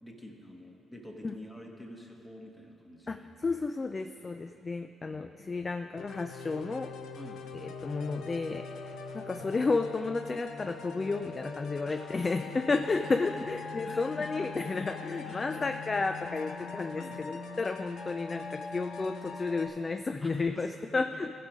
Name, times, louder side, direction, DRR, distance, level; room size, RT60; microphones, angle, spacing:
voice 1, 0.0-3.3 4.8-5.3 7.2-7.5 11.9-12.8 13.2-13.4 13.8-14.4 15.2-15.8 16.9-17.3 20.2-21.2, left 1 dB, 15° left, 1 dB, 1.3 m, -48 dB
voice 2, 3.1-6.9 7.5-21.3, left 3 dB, 30° left, 8 dB, 0.3 m, -32 dB
sound 1, 6.0-19.7, left 4 dB, 80° left, 0.7 m, -42 dB
15.0 x 5.1 x 5.0 m, 2.9 s
cardioid pair, 90°, 0 cm